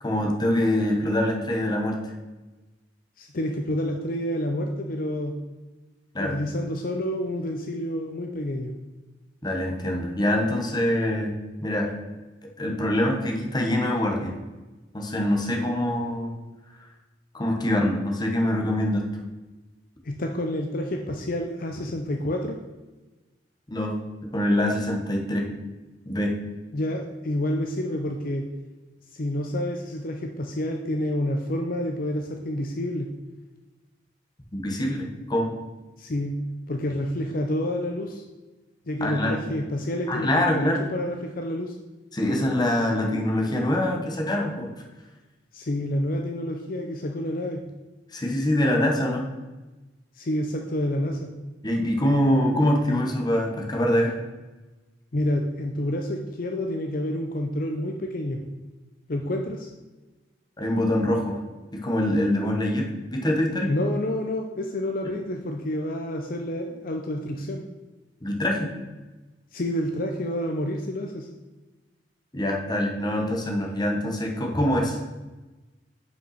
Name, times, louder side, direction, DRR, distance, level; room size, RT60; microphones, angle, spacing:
voice 1, 0.0-2.0 6.1-6.4 9.4-11.3 11.6-11.9 12.6-14.3 14.9-16.3 17.3-19.0 23.7-24.0 24.3-25.5 26.0-26.4 34.5-35.5 39.0-39.4 40.1-40.8 42.1-44.7 48.1-49.3 51.6-54.2 60.6-61.4 61.7-63.7 68.2-68.7 72.3-75.0, left 1 dB, 25° left, 1 dB, 1.1 m, -24 dB
voice 2, 3.2-5.4 6.2-8.7 20.0-22.6 26.7-28.4 29.1-33.1 36.0-36.4 36.7-38.2 38.9-41.8 45.5-47.6 50.2-51.3 55.1-58.4 59.1-59.7 63.7-67.6 69.5-71.3, left 1 dB, 50° left, 3 dB, 0.6 m, -28 dB
5.6 x 5.4 x 5.7 m, 1.2 s
head